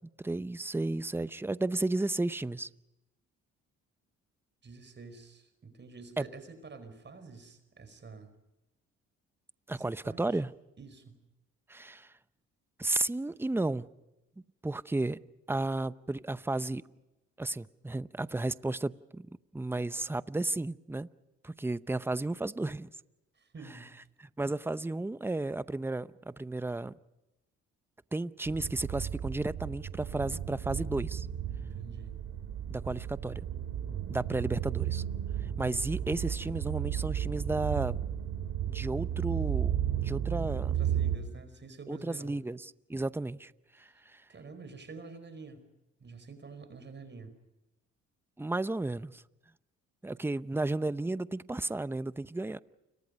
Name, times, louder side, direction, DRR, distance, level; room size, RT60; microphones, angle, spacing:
voice 1, 0.2-2.7 6.2-6.3 9.7-10.5 11.7-12.1 12.8-13.9 14.6-15.2 15.5-16.8 17.4-21.1 21.4-22.9 24.2-26.9 28.1-31.3 32.7-33.4 34.1-35.0 35.6-38.0 38.7-40.7 41.9-43.5 43.8-44.2 48.4-49.2 50.0-52.6, right 2 dB, 10° right, 0.7 m, -33 dB
voice 2, 4.6-8.3 9.7-10.4 10.8-11.2 23.3-24.0 31.6-32.1 40.7-42.3 43.9-44.0 44.3-45.6 46.0-47.3, right 4 dB, 35° right, 5.0 m, -48 dB
sound 1, 28.5-41.2, right 10 dB, 75° right, 3.3 m, -34 dB
29.5 x 24.0 x 5.3 m
cardioid pair, 90°, 30 cm